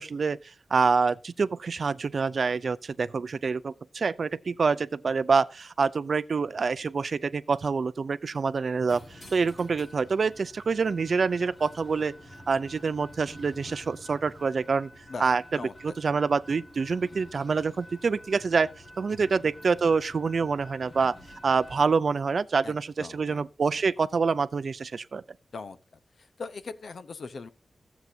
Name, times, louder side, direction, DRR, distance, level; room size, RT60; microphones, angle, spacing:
voice 1, 0.0-12.1 12.5-14.9 15.2-15.4 15.8-18.7 19.0-21.1 21.4-25.2, right 5 dB, 55° right, 0.4 m, -26 dB
sound 1, 8.9-21.8, left 1 dB, 30° left, 1.7 m, -49 dB
voice 2, 19.1-19.5 22.6-23.8 25.5-25.8 26.1-27.5, left 4 dB, 65° left, 0.8 m, -41 dB
15.5 x 8.1 x 2.7 m
wide cardioid pair, 165°, 0 cm